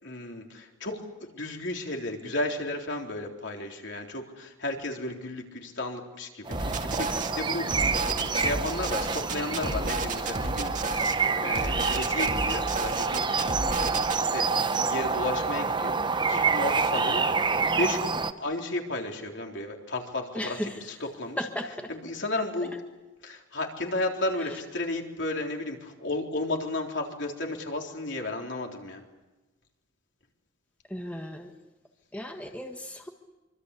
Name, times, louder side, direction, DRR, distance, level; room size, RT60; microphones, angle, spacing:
voice 1, 0.0-7.7 8.0-10.8 11.3-13.8 14.1-16.0 16.3-17.3 17.6-21.5 21.9-22.8 23.2-29.0, left 2 dB, 60° left, 1 dB, 3.8 m, -33 dB
sound 1, 6.5-18.3, right 4 dB, 20° right, 0.8 m, -27 dB
sound 2, 6.5-7.3 7.7-11.1 11.5-14.2, right 3 dB, 35° right, 2.1 m, -32 dB
voice 2, 20.3-20.8 21.4-21.9 30.9-31.5 32.1-33.1, equal, 5° left, 3 dB, 1.4 m, -35 dB
25.5 x 25.0 x 8.4 m, 1.1 s
head